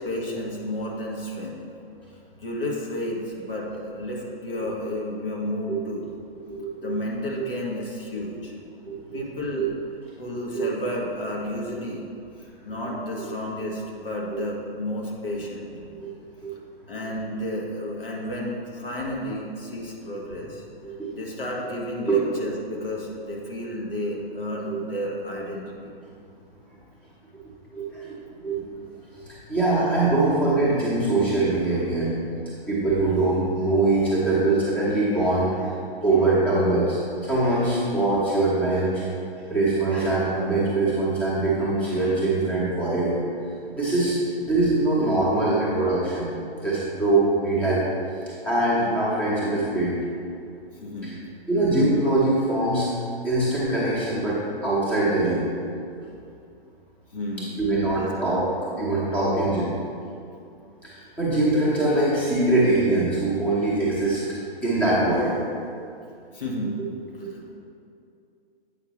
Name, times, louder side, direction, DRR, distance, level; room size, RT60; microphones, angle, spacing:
voice 1, 0.0-1.6 2.4-6.1 6.8-8.5 9.1-9.7 10.2-12.1 12.6-15.7 16.9-20.6 21.1-25.9 50.8-51.3 57.1-58.5 66.3-66.8 67.2-67.6, left 1 dB, 65° left, -3 dB, 1.6 m, -32 dB
voice 2, 6.4-6.9 7.4-7.5 8.8-9.2 9.5-9.7 10.5-10.7 14.3-14.4 15.9-16.1 16.4-16.5 20.8-21.2 22.1-22.2 24.6-24.8 27.7-28.1 28.4-28.8 29.3-32.1 32.7-35.8 36.0-39.0 39.5-43.2 43.7-44.2 44.4-46.3 46.6-47.8 48.4-49.9 51.0-51.1 51.5-52.9 53.2-55.4 57.6-58.5 58.8-59.7 60.8-64.2 64.6-65.4 67.2-67.3, right 2 dB, 5° left, -9 dB, 1.1 m, -23 dB
8.2 x 5.7 x 3.1 m, 2.5 s
figure-of-eight pair, 120°, 31 cm